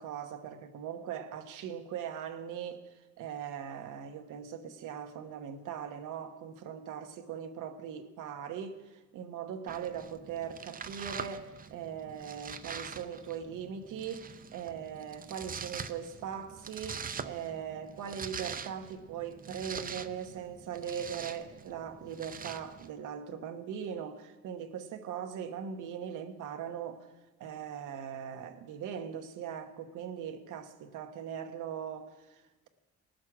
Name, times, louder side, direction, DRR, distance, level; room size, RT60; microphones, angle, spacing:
voice 1, 0.0-27.1 27.4-32.7, right 8 dB, 85° right, 1.1 m, -40 dB
Domestic sounds home sounds, 9.7-22.9, right 6 dB, 30° right, 0.6 m, -44 dB
19.0 x 6.4 x 6.1 m
cardioid pair, 90°, 30 cm